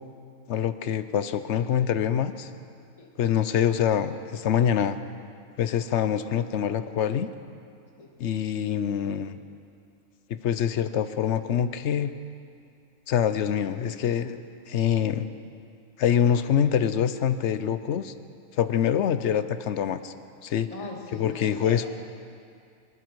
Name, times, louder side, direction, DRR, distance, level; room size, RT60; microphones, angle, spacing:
voice 1, 0.5-2.5 3.2-5.0 5.6-7.3 8.2-9.4 10.3-12.1 13.1-15.3 16.0-18.1 18.6-20.1 20.4-20.7 21.1-21.9, left 9 dB, 65° left, 12 dB, 0.9 m, -25 dB
voice 2, 20.7-21.9, left 2 dB, 25° left, -2 dB, 2.3 m, -40 dB
24.5 x 12.0 x 4.7 m, 2.4 s
omnidirectional pair, 1.4 m